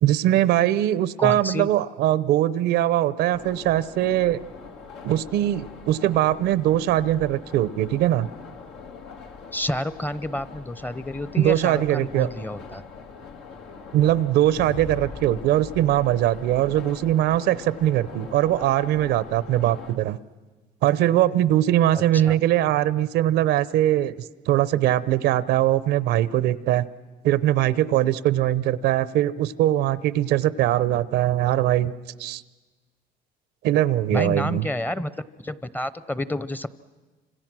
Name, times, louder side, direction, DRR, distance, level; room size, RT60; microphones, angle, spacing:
voice 1, 0.0-4.4 5.0-8.3 11.4-12.3 13.9-20.2 20.8-26.9 27.2-31.9 32.2-32.4 33.6-34.7, right 13 dB, 85° right, 17 dB, 0.8 m, -21 dB
voice 2, 1.2-1.7 9.5-12.8 21.9-22.4 34.1-36.7, left 1 dB, 10° left, 16 dB, 0.7 m, -29 dB
sound 1, 3.3-20.0, left 5 dB, 90° left, 2.2 m, -43 dB
sound 2, 14.6-18.7, left 5 dB, 45° left, 2.2 m, -43 dB
29.5 x 26.0 x 6.2 m, 1.3 s
cardioid pair, 110°, 17 cm